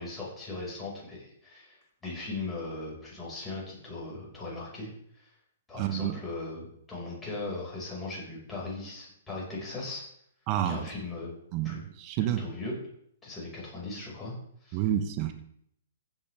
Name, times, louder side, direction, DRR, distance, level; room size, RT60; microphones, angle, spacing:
voice 1, 0.0-5.3 5.7-10.0 10.6-11.3 11.6-11.8 12.4-12.7 13.2-14.4 14.6-14.8, left 3 dB, 15° left, -5 dB, 5.4 m, -38 dB
voice 2, 5.8-6.2 10.5-10.8 11.5-12.5 14.7-15.3, right 11 dB, 35° right, 8 dB, 1.0 m, -29 dB
15.0 x 8.6 x 3.5 m, 0.70 s
figure-of-eight pair, 120°, 0 cm